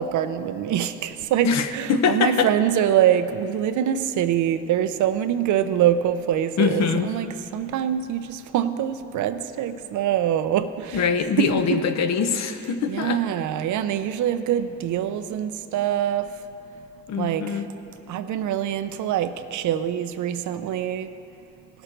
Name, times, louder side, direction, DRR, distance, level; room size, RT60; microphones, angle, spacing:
voice 1, 0.0-7.3 7.5-11.1 11.4-11.8 12.9-16.3 17.2-17.6 18.1-21.1, right 10 dB, 75° right, 11 dB, 0.6 m, -24 dB
voice 2, 1.4-2.5 6.6-7.1 10.9-13.2 17.1-17.6, left 6 dB, 65° left, 9 dB, 0.8 m, -23 dB
16.5 x 6.7 x 4.5 m, 2.9 s
cardioid pair, 90°, 30 cm